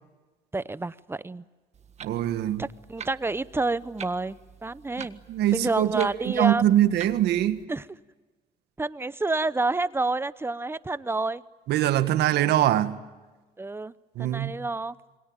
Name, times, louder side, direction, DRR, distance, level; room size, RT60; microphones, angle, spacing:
voice 1, 0.5-1.4 2.6-5.2 5.5-6.6 7.7-7.8 8.8-11.4 13.6-13.9 14.2-15.0, right 3 dB, 15° right, 0.8 m, -29 dB
Clock, 1.7-7.6, right 7 dB, 40° right, 1.6 m, -46 dB
voice 2, 2.0-2.7 5.0-7.7 11.7-13.0 14.2-14.7, right 12 dB, 75° right, 1.8 m, -23 dB
27.5 x 23.0 x 9.0 m
cardioid pair, 110°, 17 cm